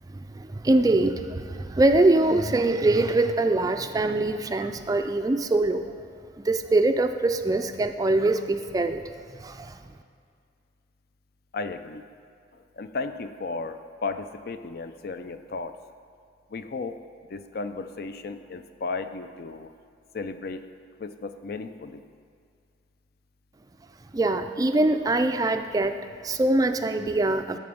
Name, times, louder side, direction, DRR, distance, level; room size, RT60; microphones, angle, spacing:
voice 1, 0.1-5.8 6.4-9.0 9.4-9.8 24.1-26.0 26.2-27.6, right 2 dB, 20° right, 8 dB, 0.3 m, -23 dB
voice 2, 11.5-12.0 12.5-15.8 16.5-17.0 17.3-19.7 20.1-20.7 21.0-22.0, left 4 dB, 55° left, 9 dB, 0.4 m, -34 dB
13.0 x 4.3 x 7.0 m, 2.3 s
head